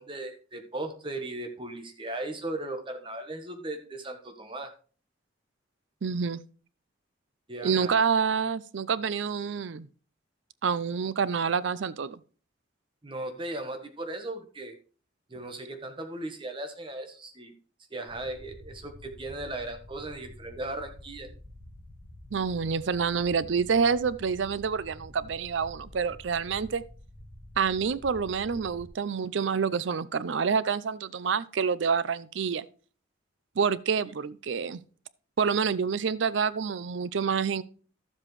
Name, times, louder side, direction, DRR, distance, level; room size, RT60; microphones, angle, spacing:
voice 1, 0.0-4.7 7.5-8.0 13.0-14.7 15.3-17.5 17.9-21.3 34.1-34.2, right 2 dB, 25° right, 1.2 m, -37 dB
voice 2, 6.0-6.4 7.6-9.9 10.6-12.2 22.3-26.8 27.6-32.6 33.6-34.8 35.4-37.6, right 6 dB, 70° right, 0.5 m, -27 dB
sound 1, 18.1-28.9, equal, 10° left, 1.6 m, -48 dB
12.5 x 7.5 x 3.2 m
head